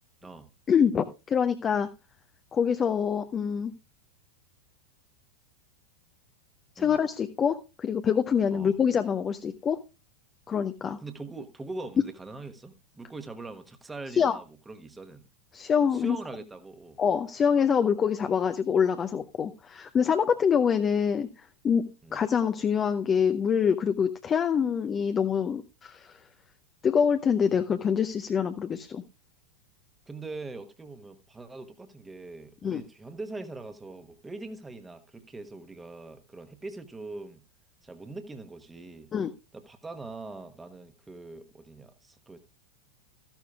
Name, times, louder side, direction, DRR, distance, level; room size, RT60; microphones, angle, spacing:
voice 1, 0.7-1.9 2.5-3.7 6.8-9.8 10.5-11.0 14.2-14.4 15.5-16.2 17.0-21.3 21.6-26.1 26.8-29.0 32.6-32.8 39.1-39.3, left 7 dB, 25° left, 0.7 m, -25 dB
voice 2, 10.8-15.3 15.9-17.0 22.0-22.2 30.1-37.4 37.8-39.1 39.5-42.4, right 3 dB, 10° right, 1.2 m, -42 dB
14.0 x 11.5 x 2.4 m
figure-of-eight pair, 90°, 0 cm